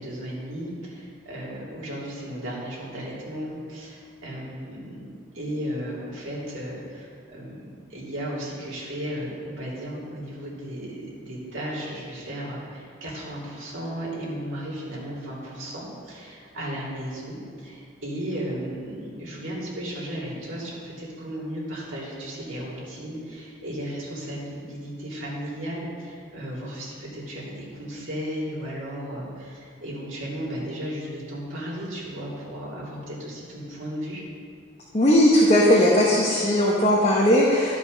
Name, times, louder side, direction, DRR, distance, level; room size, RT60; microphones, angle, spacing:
voice 1, 0.0-34.2, equal, 85° right, -6 dB, 2.7 m, -35 dB
voice 2, 34.9-37.8, left 1 dB, 35° left, -4 dB, 1.0 m, -18 dB
12.0 x 5.2 x 5.2 m, 2.1 s
head